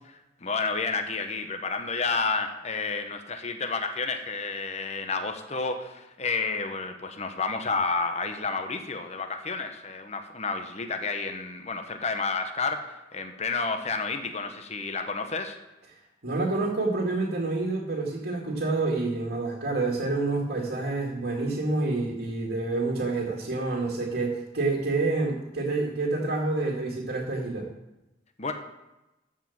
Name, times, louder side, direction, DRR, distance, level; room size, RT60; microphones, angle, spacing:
voice 1, 0.1-15.6 28.4-28.5, left 4 dB, 35° left, 5 dB, 1.1 m, -30 dB
voice 2, 16.2-27.7, right 3 dB, 60° right, -2 dB, 2.2 m, -28 dB
14.0 x 5.2 x 7.2 m, 0.97 s
head